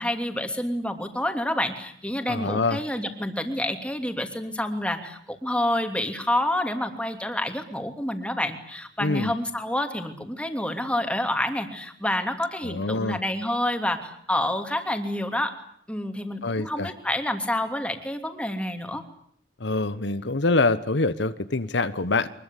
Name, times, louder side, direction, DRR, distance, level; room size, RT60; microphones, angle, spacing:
voice 1, 0.0-15.5 15.9-19.0, left 1 dB, 5° left, 6 dB, 2.9 m, -28 dB
voice 2, 2.3-2.8 9.0-9.3 12.6-13.2 16.4-16.9 19.6-22.3, left 3 dB, 80° left, 13 dB, 1.2 m, -25 dB
24.0 x 21.5 x 8.4 m, 0.66 s
head